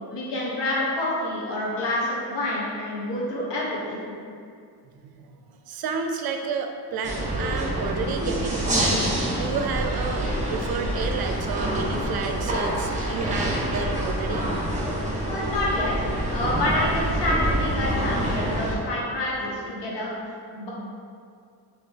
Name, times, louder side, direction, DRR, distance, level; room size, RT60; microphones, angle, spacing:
voice 1, 0.1-4.1 15.3-20.7, left 1 dB, 85° left, -5 dB, 1.0 m, -28 dB
voice 2, 5.7-14.5, right 5 dB, 60° right, 5 dB, 0.5 m, -31 dB
sound 1, 7.0-18.8, right 1 dB, 15° right, 0.8 m, -26 dB
3.4 x 2.9 x 3.3 m, 2.3 s
cardioid pair, 100°, 41 cm